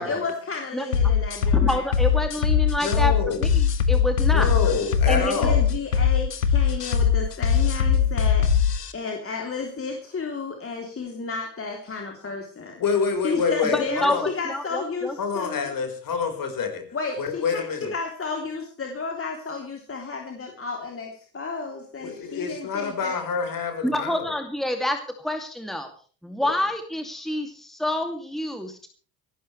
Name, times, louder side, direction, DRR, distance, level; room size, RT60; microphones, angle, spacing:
voice 1, 0.0-1.8 5.1-12.8 13.2-15.7 16.9-23.2, left 4 dB, 30° left, 2 dB, 3.4 m, -32 dB
sound 1, 0.9-8.9, left 7 dB, 90° left, 1.3 m, -21 dB
voice 2, 1.5-3.1 3.4-4.5 5.1-5.3 13.7-14.2 14.4-15.2 23.8-25.9 26.2-28.9, left 1 dB, ahead, 5 dB, 2.7 m, -27 dB
voice 3, 2.8-3.5 4.3-5.6 12.8-14.3 15.2-16.8 17.2-17.9 22.0-24.3 26.4-26.5, left 5 dB, 45° left, 6 dB, 4.9 m, -27 dB
26.0 x 13.0 x 3.3 m, 0.40 s
figure-of-eight pair, 60°, 47 cm